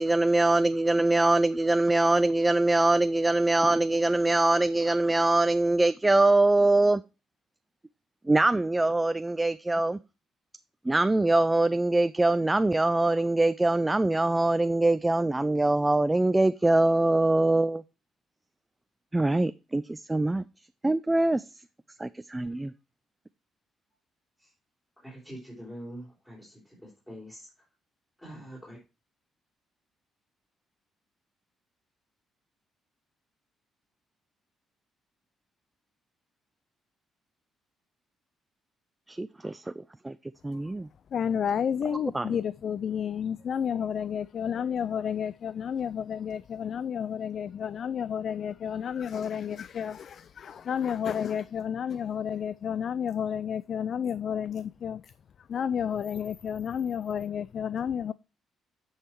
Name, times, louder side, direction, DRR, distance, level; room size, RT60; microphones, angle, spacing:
voice 1, 0.0-7.0 8.2-10.0 10.8-17.8 19.1-20.4 20.8-21.4 22.0-22.7 39.1-40.2 40.4-40.9 42.1-42.3, right 2 dB, 15° right, 0.4 m, -23 dB
voice 2, 25.0-27.6 28.2-28.8, equal, 10° left, 4.1 m, -45 dB
voice 3, 41.1-55.1 55.4-58.1, left 8 dB, 55° left, 0.3 m, -31 dB
9.9 x 5.6 x 4.5 m
cardioid pair, 90°, 0 cm